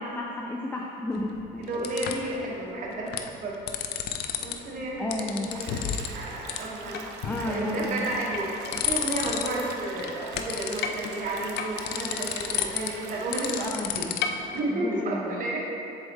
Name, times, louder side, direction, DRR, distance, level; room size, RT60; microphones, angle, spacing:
voice 1, 0.0-1.6 2.1-2.2 5.0-5.5 7.2-8.1 13.5-14.2 14.7-15.4, left 1 dB, 10° left, 0 dB, 0.4 m, -32 dB
sound 1, 1.1-2.4 2.9-3.3 3.5-4.5 4.8-6.1 6.5-6.6 6.9-7.6 8.1-9.7 10.0-14.6, left 9 dB, 75° left, 0.4 m, -31 dB
voice 2, 1.6-3.6 4.4-7.0 7.4-13.7 13.9-14.1 14.5-15.7, right 1 dB, 55° right, -3 dB, 1.2 m, -32 dB
sound 2, 5.5-13.7, right 5 dB, 90° right, 0.6 m, -44 dB
7.0 x 4.0 x 3.6 m, 2.8 s
cardioid pair, 110°, 17 cm